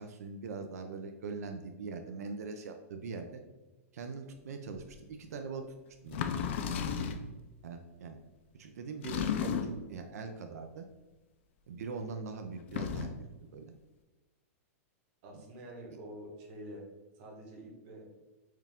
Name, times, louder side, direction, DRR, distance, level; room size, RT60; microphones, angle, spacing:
voice 1, 0.0-3.4 3.9-5.7 6.0-6.3 7.6-8.2 8.5-10.9 11.7-13.2 13.4-13.7, right 4 dB, 90° right, 6 dB, 0.4 m, -42 dB
sound 1, 4.9-5.0 6.1-7.3 9.0-9.9 12.6-13.3, left 7 dB, 50° left, 0.3 m, -34 dB
voice 2, 15.2-16.8 17.1-18.1, right 1 dB, 35° right, -1 dB, 1.0 m, -47 dB
4.5 x 2.4 x 3.5 m, 1.1 s
supercardioid pair, 165°, 8 cm